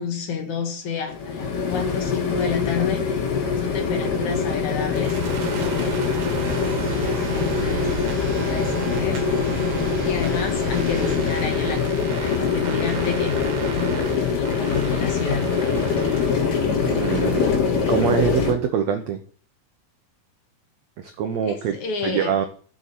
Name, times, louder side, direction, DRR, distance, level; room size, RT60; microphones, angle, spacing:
voice 1, 0.0-3.2 3.6-5.2 5.5-6.1 6.6-9.6 10.0-15.5 21.5-22.3, left 6 dB, 55° left, 2.7 m, -30 dB
sound 1, 1.1-18.5, left 6 dB, 80° left, 4.8 m, -24 dB
sound 2, 4.9-17.7, right 7 dB, 50° right, 2.5 m, -34 dB
sound 3, 6.4-11.4, right 3 dB, 25° right, 1.7 m, -39 dB
voice 2, 16.6-17.5 17.8-19.2 21.0-22.4, right 8 dB, 80° right, 1.5 m, -24 dB
7.8 x 6.8 x 7.7 m
omnidirectional pair, 4.3 m